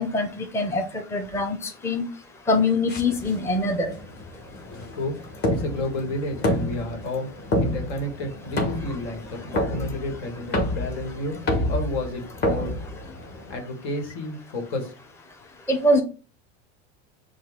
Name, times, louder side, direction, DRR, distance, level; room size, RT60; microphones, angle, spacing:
voice 1, 0.0-1.6 1.8-2.0 2.5-3.9 15.7-16.0, left 2 dB, 10° left, 4 dB, 0.6 m, -23 dB
sound 1, 2.9-13.6, left 1 dB, 30° left, 1.2 m, -29 dB
voice 2, 4.7-7.3 7.6-12.8 13.5-14.9, left 1 dB, 80° left, 3 dB, 1.7 m, -31 dB
5.6 x 2.4 x 3.5 m, 0.35 s
supercardioid pair, 120°, 34 cm